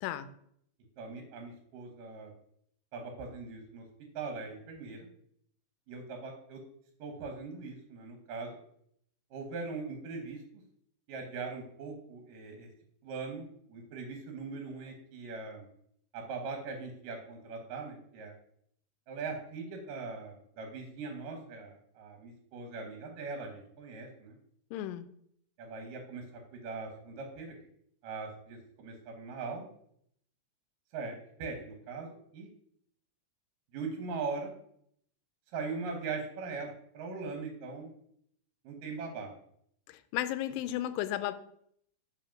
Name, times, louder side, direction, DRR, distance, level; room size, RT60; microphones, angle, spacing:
voice 1, 1.0-2.3 2.9-3.9 4.1-5.1 5.9-6.6 7.0-8.5 9.3-10.6 11.1-12.7 13.0-15.7 16.1-18.3 19.1-24.4 25.6-26.2 26.5-27.5 28.0-29.7 30.9-32.5 33.7-34.5 35.5-37.9 38.6-39.3, right 4 dB, 75° right, 3 dB, 2.5 m, -40 dB
voice 2, 24.7-25.1 40.1-41.3, left 13 dB, 85° left, 12 dB, 2.2 m, -33 dB
5.4 x 5.0 x 5.7 m, 0.68 s
omnidirectional pair, 4.0 m